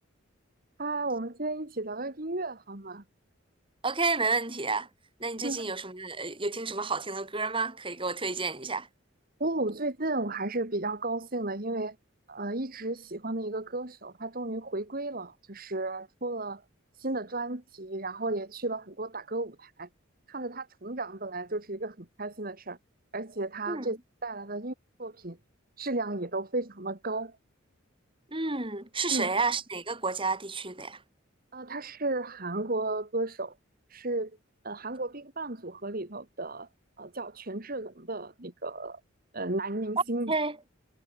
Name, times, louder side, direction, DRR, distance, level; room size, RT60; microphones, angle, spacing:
voice 1, 0.8-3.0 5.4-5.7 9.4-12.0 12.3-16.6 16.9-19.9 20.3-22.8 23.1-25.4 25.8-27.3 29.1-29.3 31.5-33.5 33.9-34.3 34.6-36.7 37.0-39.0 39.3-40.3, right 2 dB, 45° right, 2.5 m, -34 dB
voice 2, 3.8-4.9 5.2-8.9 23.7-23.9 28.3-31.0 40.3-40.6, right 3 dB, 25° right, 7.4 m, -30 dB
head